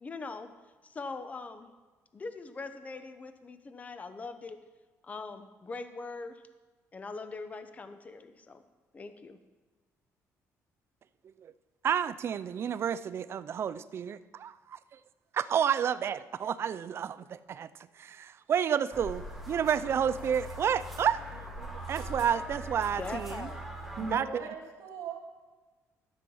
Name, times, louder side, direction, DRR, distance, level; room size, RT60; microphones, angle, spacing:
voice 1, 0.0-0.5 0.8-1.7 2.1-4.6 5.0-6.4 6.9-8.6 8.9-9.4 23.0-23.6, left 3 dB, 25° left, 10 dB, 0.8 m, -41 dB
voice 2, 11.8-15.0 15.3-17.7 18.0-23.5 24.1-24.4, right 8 dB, 45° right, 15 dB, 0.4 m, -30 dB
sound 1, 18.9-24.2, right 1 dB, ahead, 1.4 m, -41 dB
voice 3, 24.0-25.2, right 5 dB, 65° right, -6 dB, 2.2 m, -37 dB
13.0 x 7.6 x 5.5 m, 1.3 s
cardioid pair, 120°, 6 cm